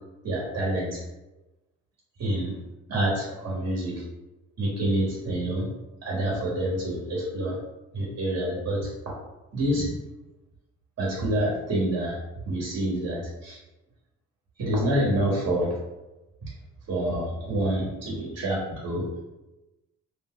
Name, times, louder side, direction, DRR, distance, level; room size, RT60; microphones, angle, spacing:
voice 1, 0.2-1.0 2.2-2.6 2.9-4.0 4.6-5.7 6.0-7.6 7.9-8.9 9.5-10.0 11.0-12.2 12.5-13.6 14.6-15.8 16.9-19.0, right 1 dB, 55° right, -4 dB, 1.0 m, -27 dB
2.5 x 2.2 x 3.7 m, 1.0 s
cardioid pair, 90°, 30 cm